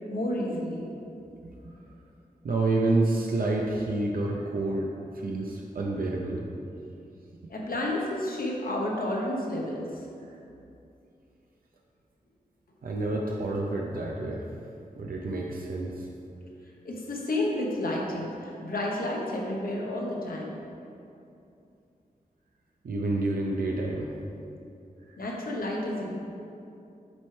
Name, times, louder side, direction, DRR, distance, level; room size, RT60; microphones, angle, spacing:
voice 1, 0.1-0.9 7.5-9.9 16.8-20.6 25.2-26.2, left 1 dB, 80° left, -2 dB, 0.9 m, -31 dB
voice 2, 2.4-4.9 5.1-6.5 12.8-14.4 15.0-16.1 22.8-24.1 25.1-25.2, right 2 dB, 80° right, -2 dB, 0.6 m, -28 dB
7.2 x 3.2 x 4.4 m, 2.7 s
wide cardioid pair, 80°, 15 cm